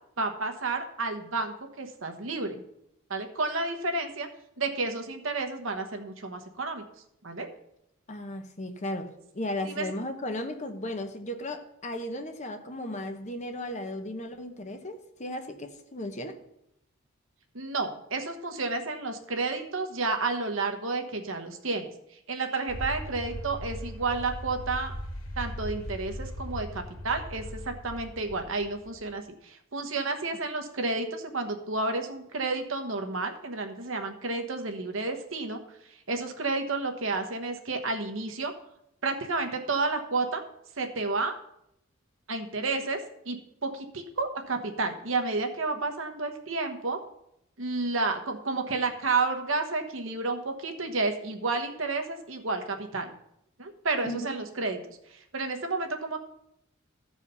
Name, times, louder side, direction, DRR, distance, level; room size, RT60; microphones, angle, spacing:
voice 1, 0.2-2.6 3.1-4.3 4.6-6.8 7.2-7.5 9.6-9.8 17.5-21.9 22.3-24.9 25.4-35.6 36.1-38.5 39.0-40.4 40.8-41.4 42.3-43.0 43.2-43.4 43.6-47.0 47.6-53.1 53.6-55.0 55.3-56.2, right 3 dB, 65° right, 5 dB, 1.2 m, -31 dB
voice 2, 8.1-16.4 54.0-54.3, left 1 dB, 35° left, 6 dB, 0.9 m, -35 dB
sound 1, 22.7-29.2, equal, 90° left, 2.1 m, -39 dB
14.0 x 4.9 x 5.5 m, 0.79 s
head